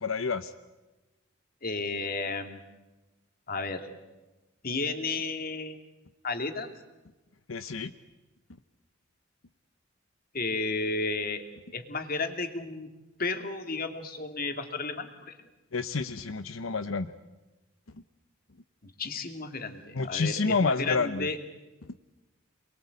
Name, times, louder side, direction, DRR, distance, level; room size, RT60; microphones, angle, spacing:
voice 1, 0.0-0.5 7.5-7.9 15.7-17.1 19.9-21.3, left 4 dB, 85° left, 10 dB, 0.9 m, -29 dB
voice 2, 1.6-2.6 3.5-3.9 4.6-5.8 6.2-6.7 10.3-11.4 11.7-12.9 13.2-15.4 18.8-21.4, left 3 dB, 45° left, 6 dB, 2.7 m, -33 dB
28.0 x 22.0 x 8.4 m, 1.1 s
head